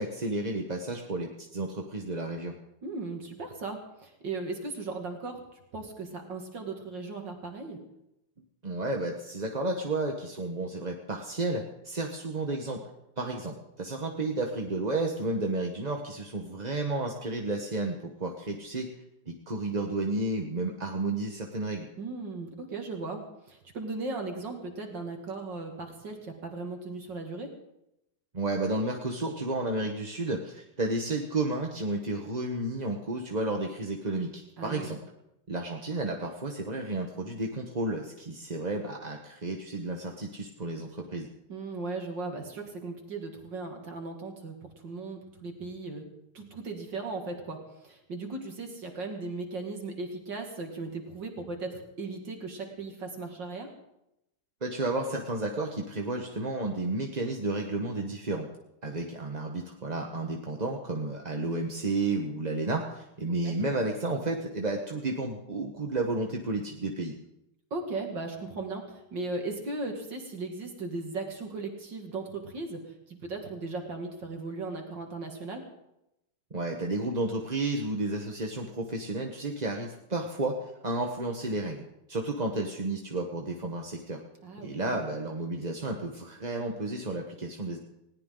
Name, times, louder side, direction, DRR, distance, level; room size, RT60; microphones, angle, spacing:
voice 1, 0.0-2.5 8.6-12.8 13.2-18.9 19.3-21.9 28.3-35.0 35.5-41.3 54.6-58.5 58.8-67.2 76.5-81.8 82.1-84.2 84.6-87.8, right 2 dB, 25° right, 1 dB, 1.1 m, -32 dB
voice 2, 2.8-7.8 22.0-27.5 34.6-34.9 41.5-44.6 44.8-46.0 46.3-53.7 63.4-63.5 67.7-75.6 84.4-85.0, right 3 dB, 55° right, 2 dB, 2.9 m, -37 dB
20.0 x 18.5 x 3.9 m, 0.86 s
omnidirectional pair, 2.4 m